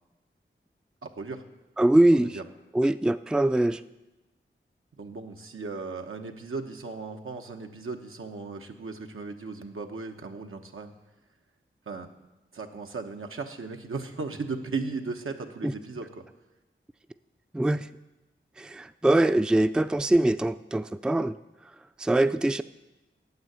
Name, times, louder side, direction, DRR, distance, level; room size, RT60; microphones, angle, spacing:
voice 1, 1.0-1.4 2.1-2.4 5.0-10.9 11.9-12.1 12.5-16.2, right 4 dB, 85° right, 4 dB, 1.0 m, -36 dB
voice 2, 1.8-2.4 2.7-3.8 15.6-15.7 17.5-17.9 18.6-21.3 22.0-22.6, right 1 dB, 5° right, 12 dB, 0.3 m, -23 dB
9.4 x 8.2 x 8.0 m, 1.0 s
wide cardioid pair, 55°, 21 cm